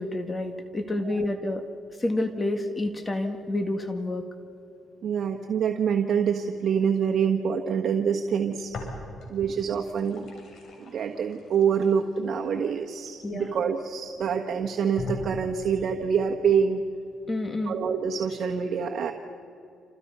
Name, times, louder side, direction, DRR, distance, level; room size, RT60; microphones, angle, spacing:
voice 1, 0.0-1.6 2.0-4.3 13.2-13.6 17.3-17.7, left 1 dB, 25° left, 6 dB, 1.8 m, -29 dB
voice 2, 5.0-8.7 9.3-10.4 10.9-16.8 17.6-19.1, right 7 dB, 60° right, 3 dB, 1.4 m, -26 dB
sound 1, 8.7-9.5 9.8-13.8 14.3-14.4 15.0-15.9, left 3 dB, 70° left, 7.2 m, -40 dB
28.5 x 28.0 x 5.6 m, 2.7 s
cardioid pair, 90°, 0 cm